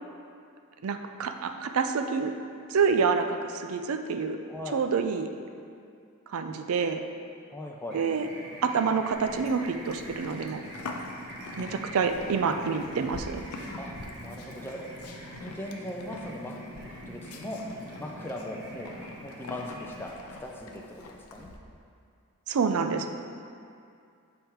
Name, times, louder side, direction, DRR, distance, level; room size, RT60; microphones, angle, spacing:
voice 1, 0.8-2.3 2.7-4.4 4.7-5.3 6.3-7.0 7.9-8.3 8.6-10.6 11.6-13.4 22.5-23.1, right 5 dB, 70° right, 7 dB, 0.4 m, -27 dB
voice 2, 4.5-4.8 7.5-8.0 13.8-14.8 15.4-16.6 17.1-17.6 18.0-18.9 19.2-20.1 20.4-21.5, left 1 dB, 10° left, -1 dB, 0.4 m, -39 dB
sound 1, 7.9-20.1, equal, 50° right, 1.2 m, -44 dB
Livestock farm animals working animals, 9.1-21.6, left 3 dB, 70° left, 0.5 m, -45 dB
7.1 x 3.5 x 4.4 m, 2.4 s
head